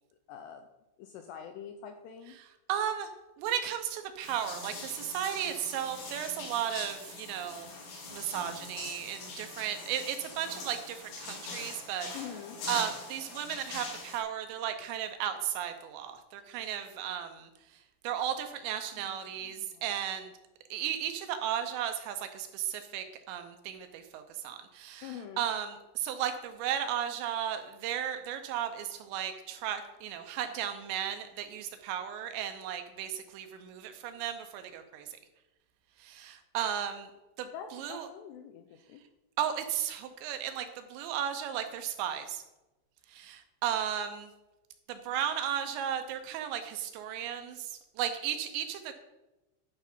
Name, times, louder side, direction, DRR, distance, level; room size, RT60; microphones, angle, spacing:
voice 1, 0.3-0.7 1.0-2.4 12.1-12.6 18.8-19.2 19.4-19.8 25.0-25.5 37.5-39.0, left 8 dB, 85° left, 6 dB, 2.4 m, -45 dB
voice 2, 2.4-3.1 3.4-7.7 8.1-12.1 12.7-20.3 20.7-35.1 36.0-37.1 37.4-38.1 39.4-42.4 43.1-44.3 44.9-48.9, right 10 dB, 80° right, 8 dB, 2.8 m, -35 dB
sound 1, 4.2-14.2, left 3 dB, 70° left, 4.6 m, -43 dB
11.5 x 5.4 x 5.3 m, 1.0 s
omnidirectional pair, 5.4 m